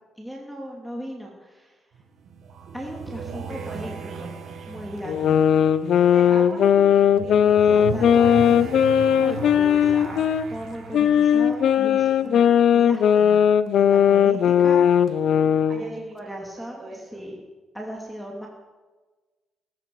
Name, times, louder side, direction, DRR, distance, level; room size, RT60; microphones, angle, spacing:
voice 1, 0.2-1.7 2.7-4.3 4.7-5.4 7.7-8.7 9.2-13.4 13.7-14.8 15.8-15.9 16.1-17.3 17.7-18.5, equal, ahead, -2 dB, 2.7 m, -37 dB
sound 1, 1.9-12.7, right 5 dB, 65° right, 2.2 m, -37 dB
voice 2, 3.3-3.7 6.1-9.2 15.6-17.3, right 3 dB, 45° right, 0 dB, 5.7 m, -40 dB
sound 2, 5.0-10.4 10.9-15.8, left 9 dB, 70° left, 0.6 m, -18 dB
19.5 x 12.5 x 4.9 m, 1.3 s
cardioid pair, 95°, 0 cm